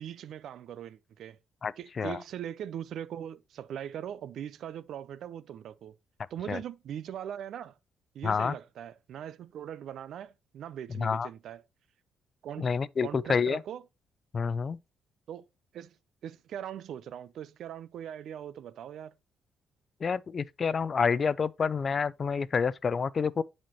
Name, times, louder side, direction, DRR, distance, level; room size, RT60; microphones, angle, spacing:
voice 1, 0.0-1.4 1.8-6.0 6.3-7.8 8.1-11.6 12.4-12.7 13.0-13.8 15.3-15.4 15.7-15.9 16.2-19.1, right 10 dB, 70° right, 0.5 m, -40 dB
voice 2, 1.6-2.2 6.5-6.6 8.2-8.5 11.0-11.3 12.6-13.6 14.3-14.8 20.0-23.4, left 5 dB, 40° left, 0.3 m, -28 dB
10.5 x 4.3 x 3.0 m
cardioid pair, 100°, 0 cm